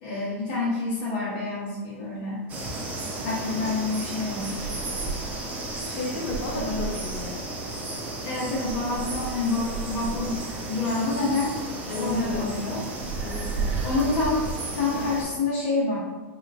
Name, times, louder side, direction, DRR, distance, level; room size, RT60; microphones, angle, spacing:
voice 1, 0.0-2.4 3.2-4.7 6.5-6.9 8.2-11.5 11.9-13.1 13.8-14.4 14.7-16.0, left 3 dB, 60° left, -8 dB, 1.0 m, -28 dB
sound 1, 2.5-15.2, right 2 dB, 20° right, 0.6 m, -32 dB
voice 2, 5.8-7.4 11.9-12.4 13.2-13.7, left 2 dB, 90° left, -2 dB, 1.1 m, -33 dB
3.8 x 2.9 x 2.6 m, 1.3 s
supercardioid pair, 150°, 7 cm